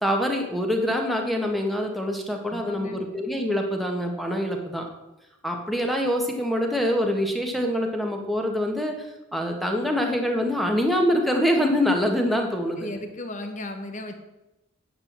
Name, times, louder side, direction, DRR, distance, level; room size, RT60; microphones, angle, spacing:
voice 1, 0.0-4.9 5.4-8.9 9.3-12.9, equal, ahead, 2 dB, 1.6 m, -25 dB
voice 2, 2.5-3.0 12.8-14.1, left 1 dB, 40° left, 7 dB, 1.5 m, -35 dB
10.0 x 8.1 x 7.5 m, 0.96 s
head